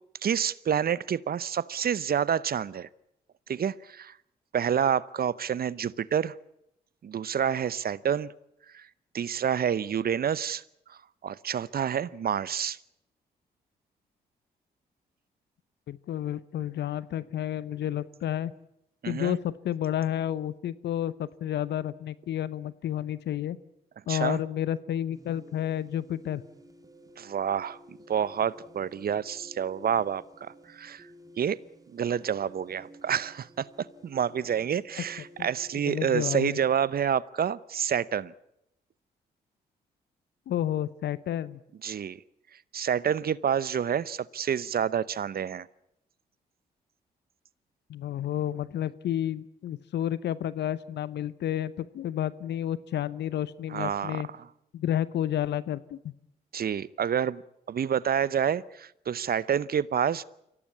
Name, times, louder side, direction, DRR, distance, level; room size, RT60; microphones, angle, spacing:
voice 1, 0.2-2.9 3.5-4.1 4.5-6.3 7.0-8.3 8.7-8.9 9.1-10.6 10.9-12.8 19.0-19.4 24.1-24.4 27.2-31.1 31.4-31.6 31.9-38.3 41.8-42.2 42.7-45.7 53.7-54.5 56.5-57.4 57.7-60.2, right 8 dB, 55° right, 20 dB, 0.8 m, -28 dB
voice 2, 15.9-18.5 19.1-23.6 24.1-26.4 35.4-35.5 35.8-36.5 40.5-41.6 47.9-54.3 54.7-56.1, left 11 dB, 70° left, 18 dB, 0.8 m, -31 dB
sound 1, 25.1-36.8, equal, 20° right, 3.2 m, -53 dB
24.0 x 17.5 x 8.5 m, 0.81 s
hypercardioid pair, 45°, 18 cm